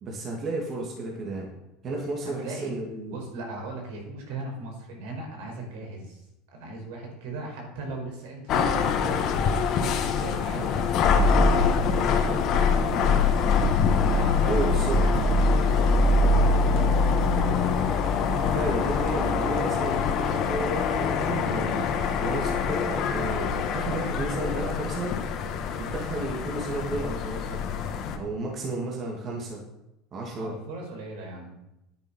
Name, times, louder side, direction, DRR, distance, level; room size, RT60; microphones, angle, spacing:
voice 1, 0.0-1.5 1.8-3.2 14.4-15.0 18.5-21.9 22.2-25.2 25.7-27.6 28.1-29.6 30.1-30.6, right 2 dB, 40° right, -1 dB, 2.8 m, -32 dB
voice 2, 2.2-2.7 3.1-6.3 6.5-13.7 14.1-17.5 30.4-31.6, right 2 dB, 80° right, 0 dB, 5.1 m, -38 dB
sound 1, 8.5-28.2, left 4 dB, 50° left, 1.7 m, -24 dB
10.5 x 8.8 x 5.8 m, 0.87 s
supercardioid pair, 115°, 0 cm